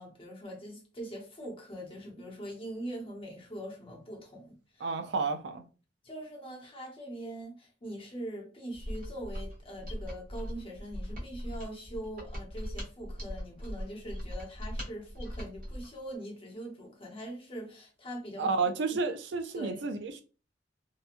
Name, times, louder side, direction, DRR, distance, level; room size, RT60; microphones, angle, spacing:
voice 1, 0.0-4.9 6.0-18.5 19.5-19.8, right 1 dB, 30° left, 0.8 m, -42 dB
voice 2, 4.8-5.6 18.4-20.2, right 4 dB, 65° right, 0.4 m, -31 dB
Mechanisms, 8.7-15.9, equal, 45° right, 1.2 m, -40 dB
2.9 x 2.2 x 2.4 m
head